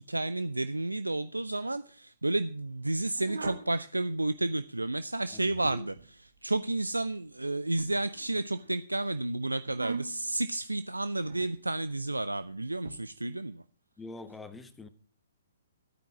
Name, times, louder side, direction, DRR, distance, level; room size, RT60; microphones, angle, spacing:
voice 1, 0.0-13.6, right 2 dB, 85° right, 0.5 m, -31 dB
sound 1, 3.2-3.7 5.2-6.1 7.8-8.7 9.7-10.3 11.2-11.6 12.8-12.9, right 4 dB, 70° right, 1.7 m, -40 dB
voice 2, 14.0-14.9, left 3 dB, 5° left, 1.0 m, -44 dB
12.5 x 9.2 x 6.0 m
figure-of-eight pair, 125°, 0 cm